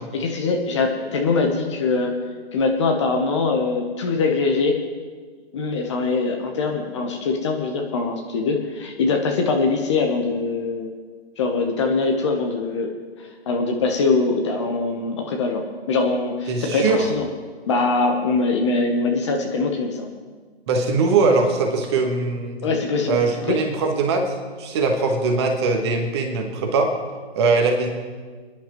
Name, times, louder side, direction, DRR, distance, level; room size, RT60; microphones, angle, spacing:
voice 1, 0.0-2.2 2.5-4.8 5.5-10.9 11.4-12.9 13.2-17.2 17.7-20.1 22.6-23.6, left 3 dB, 25° left, 3 dB, 1.0 m, -22 dB
voice 2, 16.5-17.1 20.7-22.6 23.1-26.9 27.3-27.9, right 3 dB, 25° right, 3 dB, 1.5 m, -21 dB
25.5 x 10.5 x 3.1 m, 1.5 s
figure-of-eight pair, 145°, 33 cm